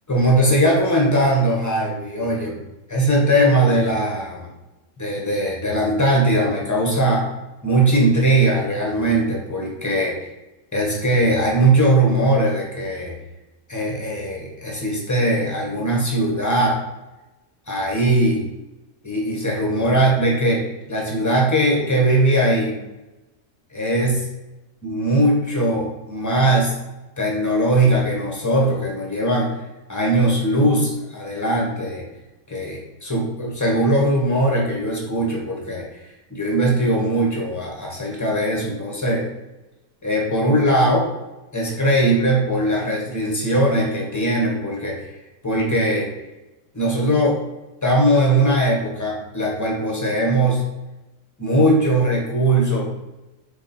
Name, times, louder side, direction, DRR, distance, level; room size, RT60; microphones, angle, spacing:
voice 1, 0.1-2.6 2.9-4.5 5.0-7.2 7.6-10.3 10.7-13.2 13.7-16.8 17.7-18.4 19.0-20.6 20.9-22.8 23.7-24.3 24.8-26.7 27.2-29.5 29.9-32.0 32.5-35.9 36.3-39.2 40.0-41.1 41.5-45.1 45.4-46.1 46.7-47.4 47.8-50.6 51.4-52.9, right 1 dB, 15° left, -2 dB, 0.6 m, -20 dB
4.2 x 2.8 x 4.0 m, 1.0 s
omnidirectional pair, 1.7 m